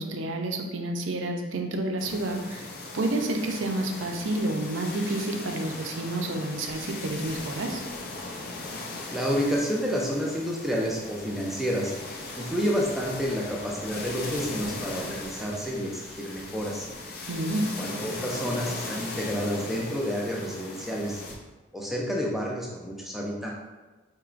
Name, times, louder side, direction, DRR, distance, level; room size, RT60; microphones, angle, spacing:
voice 1, 0.0-2.7 2.9-7.8 17.3-17.7, right 1 dB, 75° right, 3 dB, 0.5 m, -29 dB
sound 1, 2.0-21.3, left 2 dB, 50° left, 0.5 m, -38 dB
voice 2, 9.1-11.9 12.4-16.9 17.8-21.2 21.7-23.5, equal, ahead, -3 dB, 0.5 m, -29 dB
4.5 x 2.9 x 2.4 m, 1.2 s
head